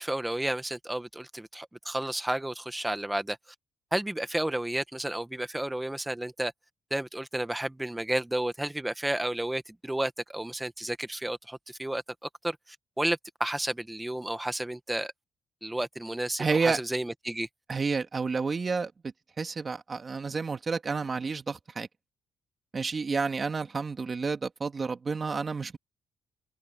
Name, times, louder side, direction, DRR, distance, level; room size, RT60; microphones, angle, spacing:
voice 1, 0.0-3.4 3.9-6.5 6.9-12.0 12.4-12.6 13.0-15.1 15.6-17.5, right 1 dB, 10° right, 1.6 m, -31 dB
voice 2, 16.4-16.8 17.7-18.9 19.4-21.9 22.7-25.8, right 4 dB, 35° right, 2.4 m, -30 dB
open air
cardioid pair, 90°, 0 cm